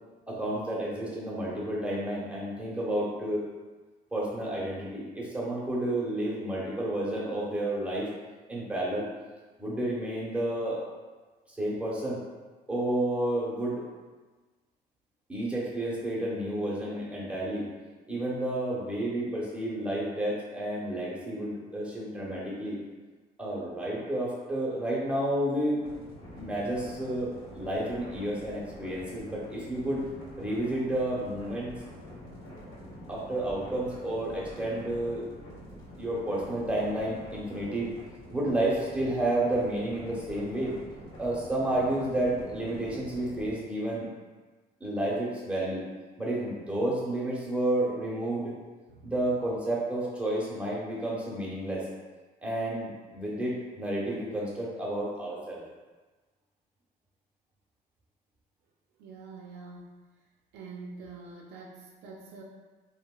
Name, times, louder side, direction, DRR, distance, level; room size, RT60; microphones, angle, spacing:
voice 1, 0.3-3.5 4.1-8.1 8.5-9.1 9.6-10.8 11.5-12.2 12.7-13.8 15.3-17.7 18.1-22.8 23.4-25.8 26.3-30.0 30.4-31.7 33.1-35.2 36.0-37.9 38.3-40.7 41.2-44.1 44.8-45.8 46.2-48.5 49.0-51.9 52.4-55.6, right 1 dB, 5° right, -6 dB, 0.9 m, -31 dB
sound 1, 25.8-43.5, equal, 80° left, 1.4 m, -46 dB
voice 2, 59.0-59.9 60.5-62.4, right 4 dB, 90° right, -2 dB, 0.4 m, -45 dB
2.9 x 2.9 x 2.3 m, 1.3 s
cardioid pair, 110°, 17 cm